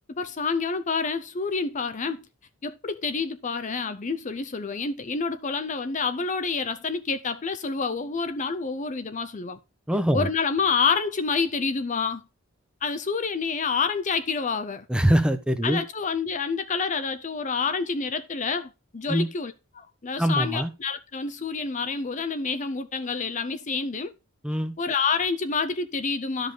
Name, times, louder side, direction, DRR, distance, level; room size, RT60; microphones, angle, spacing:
voice 1, 0.1-2.2 2.6-9.6 10.1-12.2 12.8-14.9 15.6-24.1 24.8-26.5, left 5 dB, 35° left, 0.6 m, -28 dB
voice 2, 9.9-10.3 14.9-15.8 19.1-19.3 20.2-20.7 24.4-24.7, right 1 dB, 5° right, 0.9 m, -23 dB
12.5 x 5.3 x 3.8 m
head